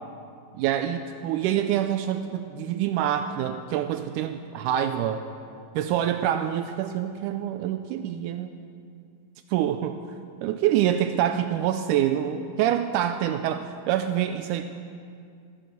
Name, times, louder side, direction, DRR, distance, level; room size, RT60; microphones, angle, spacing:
voice 1, 0.5-5.3 5.7-8.5 9.5-10.0 10.4-14.6, right 10 dB, 90° right, 8 dB, 1.8 m, -26 dB
14.0 x 10.0 x 7.9 m, 2.4 s
omnidirectional pair, 4.2 m